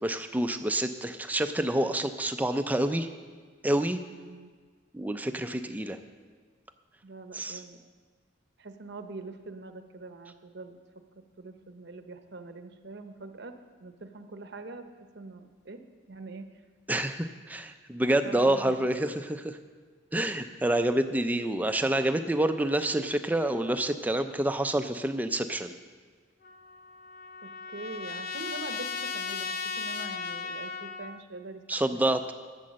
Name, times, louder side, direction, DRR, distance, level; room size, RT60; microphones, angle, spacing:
voice 1, 0.0-3.1 3.6-4.0 4.9-6.0 7.3-7.6 16.9-19.6 20.1-25.7 31.7-32.2, right 1 dB, 10° right, 8 dB, 0.4 m, -28 dB
voice 2, 4.1-4.5 7.0-7.8 8.6-10.8 11.2-13.5 13.8-15.8 16.1-16.6 18.2-19.2 27.4-31.6 31.9-32.0, right 3 dB, 60° right, 8 dB, 0.8 m, -44 dB
Trumpet, 26.4-31.2, left 5 dB, 45° left, 0.6 m, -36 dB
12.5 x 7.6 x 6.4 m, 1.5 s
head